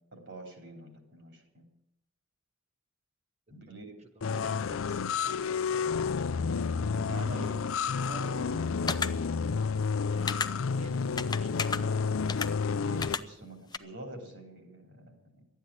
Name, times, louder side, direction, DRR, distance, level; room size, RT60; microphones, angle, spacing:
voice 1, 0.1-1.7 3.5-3.9 6.9-7.6 8.1-8.7 12.8-15.2, right 1 dB, 65° right, 4 dB, 3.3 m, -45 dB
voice 2, 3.7-5.7 7.2-7.5 10.1-12.2, right 1 dB, 35° right, 7 dB, 1.0 m, -51 dB
sound 1, 4.2-13.1, left 5 dB, 85° left, 0.5 m, -30 dB
sound 2, 8.9-9.1 10.3-10.5 11.2-11.8 12.3-12.5 13.0-13.2 13.7-13.8, left 5 dB, 20° left, 0.5 m, -31 dB
12.5 x 9.2 x 9.8 m, 0.83 s
head